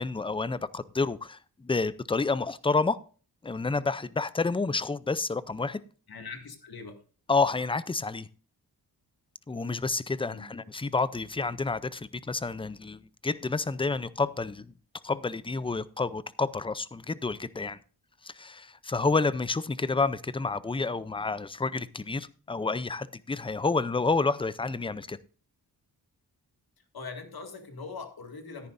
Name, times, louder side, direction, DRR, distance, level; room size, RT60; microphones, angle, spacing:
voice 1, 0.0-3.0 3.4-5.8 7.3-8.3 9.5-14.7 15.0-17.8 18.2-25.2, left 3 dB, 15° left, 0.4 m, -29 dB
voice 2, 6.1-7.0 10.3-10.5 26.9-28.7, left 4 dB, 65° left, 2.1 m, -41 dB
14.0 x 10.5 x 2.6 m
wide cardioid pair, 100°, 40 cm